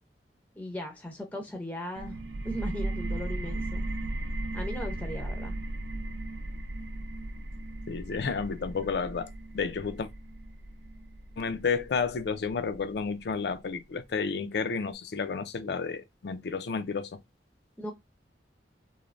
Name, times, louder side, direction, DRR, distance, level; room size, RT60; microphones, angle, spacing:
voice 1, 0.6-2.2 2.4-3.8 4.5-5.5 17.8-17.9, left 1 dB, 10° left, 0.6 m, -37 dB
sound 1, 2.0-13.4, right 1 dB, 75° right, 0.4 m, -36 dB
voice 2, 7.9-10.1 11.4-17.2, left 5 dB, 65° left, 0.4 m, -31 dB
3.1 x 2.1 x 2.4 m
head